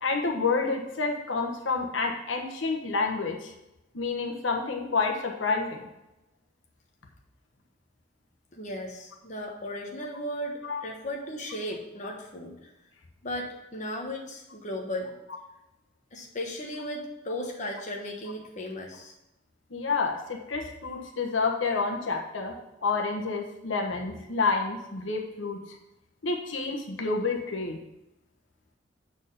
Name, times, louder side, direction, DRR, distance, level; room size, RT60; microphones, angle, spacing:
voice 1, 0.0-3.5 3.9-5.8 10.6-10.8 19.7-22.6 22.8-25.6 26.2-27.8, left 4 dB, 85° left, 1 dB, 1.1 m, -29 dB
voice 2, 8.5-12.6 13.2-15.1 16.1-19.1, left 1 dB, 40° left, 0 dB, 1.2 m, -36 dB
7.4 x 4.5 x 5.5 m, 0.92 s
head